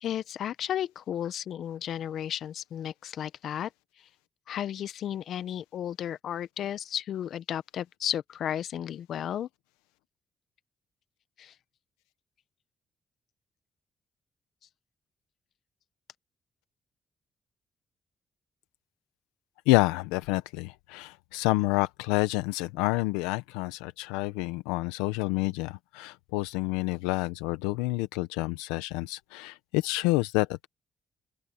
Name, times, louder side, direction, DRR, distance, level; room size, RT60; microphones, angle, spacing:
voice 1, 0.0-3.7 4.5-9.5 11.4-11.5, left 10 dB, 70° left, 1.0 m, -33 dB
voice 2, 19.7-30.7, left 20 dB, 90° left, 0.7 m, -28 dB
open air
hypercardioid pair, 50°, 0 cm